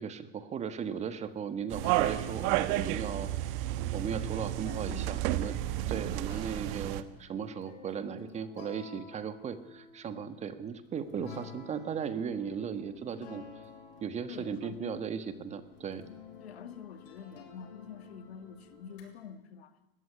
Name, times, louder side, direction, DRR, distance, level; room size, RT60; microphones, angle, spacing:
voice 1, 0.0-3.3 3.9-13.4 14.0-16.1, right 7 dB, 20° right, 1.5 m, -37 dB
sound 1, 0.6-3.8 4.1-14.4 15.1-15.2 15.7-19.0, left 6 dB, 65° left, 7.4 m, -52 dB
sound 2, 1.7-7.0, right 14 dB, 50° right, 1.4 m, -31 dB
voice 2, 4.6-5.2 10.1-10.4 14.3-15.1 16.4-19.7, left 7 dB, 85° left, 2.2 m, -46 dB
sound 3, 11.8-19.2, left 4 dB, 45° left, 7.8 m, -58 dB
20.0 x 15.5 x 10.0 m
supercardioid pair, 135°, 30 cm